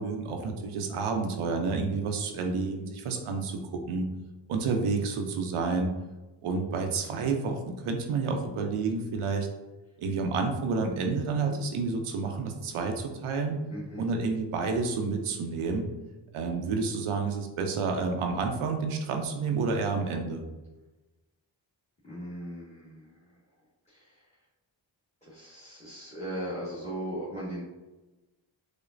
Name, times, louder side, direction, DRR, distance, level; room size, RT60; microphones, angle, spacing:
voice 1, 0.0-4.1 4.5-5.9 6.4-9.5 10.0-13.6 14.0-15.9 16.3-20.4, right 4 dB, 80° right, 4 dB, 0.6 m, -29 dB
voice 2, 13.7-14.1 22.0-23.2 23.9-24.2 25.2-27.6, right 1 dB, 15° left, -10 dB, 1.3 m, -38 dB
5.0 x 2.1 x 2.5 m, 1.1 s
cardioid pair, 45°, 49 cm